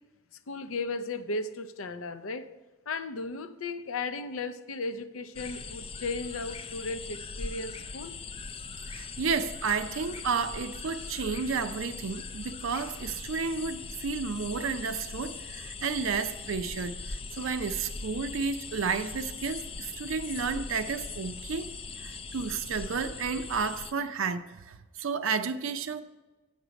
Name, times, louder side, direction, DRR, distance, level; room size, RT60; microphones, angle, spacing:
voice 1, 0.5-2.5 2.9-8.1, left 3 dB, 70° left, 0.6 m, -35 dB
sound 1, 5.3-23.9, left 4 dB, 25° left, 0.4 m, -40 dB
voice 2, 8.9-21.7 22.0-26.0, right 5 dB, 65° right, 0.5 m, -32 dB
8.1 x 6.6 x 5.0 m
head